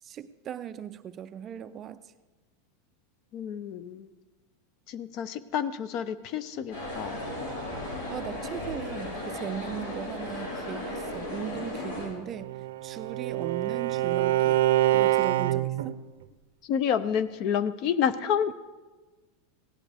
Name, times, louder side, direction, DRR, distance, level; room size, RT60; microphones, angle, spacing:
voice 1, 0.0-2.1 8.1-12.5 12.8-14.6 14.9-16.0, right 9 dB, 25° right, 12 dB, 0.4 m, -38 dB
voice 2, 3.3-4.1 4.9-7.2 16.6-18.5, left 8 dB, 40° left, 16 dB, 0.5 m, -29 dB
sound 1, 6.7-12.1, left 1 dB, 85° left, 4.6 m, -35 dB
Bowed string instrument, 12.3-15.9, right 14 dB, 80° right, 0.6 m, -25 dB
17.0 x 11.5 x 3.5 m, 1.2 s
supercardioid pair, 155°, 0 cm